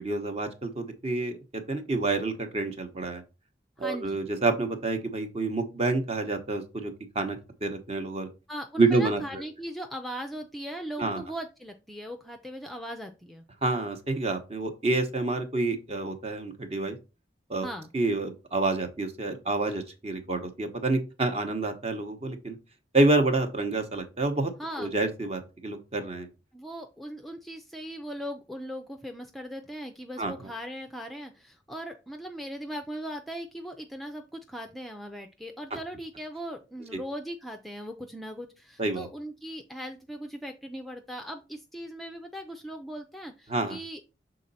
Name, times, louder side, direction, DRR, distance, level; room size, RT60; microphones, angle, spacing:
voice 1, 0.0-3.2 3.8-8.3 8.8-9.4 11.0-11.2 13.6-17.0 17.5-17.7 17.9-22.6 22.9-24.5 24.8-26.3 30.2-30.3 38.8-39.1 43.5-43.8, right 2 dB, 35° right, 7 dB, 0.9 m, -28 dB
voice 2, 3.8-4.2 8.5-13.4 17.6-17.9 24.6-25.0 26.5-44.1, equal, ahead, 5 dB, 0.4 m, -39 dB
6.3 x 3.9 x 4.1 m, 0.30 s
head